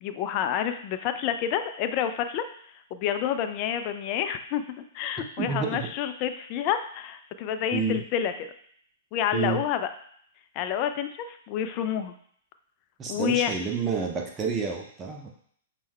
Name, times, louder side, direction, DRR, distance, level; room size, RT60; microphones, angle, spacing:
voice 1, 0.0-2.4 2.9-8.5 9.1-9.9 10.6-12.1 13.1-13.5, left 9 dB, 35° left, 9 dB, 0.3 m, -29 dB
voice 2, 5.4-5.9 7.7-8.0 9.3-9.6 13.0-15.3, right 5 dB, 20° right, 1 dB, 0.6 m, -29 dB
5.2 x 2.2 x 3.4 m, 0.62 s
figure-of-eight pair, 105°, 0 cm